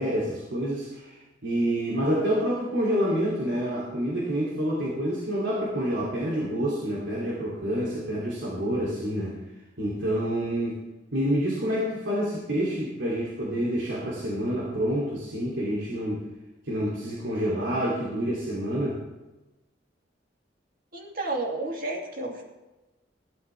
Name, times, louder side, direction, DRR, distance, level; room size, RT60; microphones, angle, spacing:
voice 1, 0.0-9.4 9.8-10.8 11.1-16.2 16.7-19.0, equal, 80° right, -6 dB, 3.1 m, -28 dB
voice 2, 20.9-22.4, right 2 dB, 50° right, -1 dB, 2.7 m, -31 dB
16.0 x 12.5 x 3.5 m, 1.1 s
head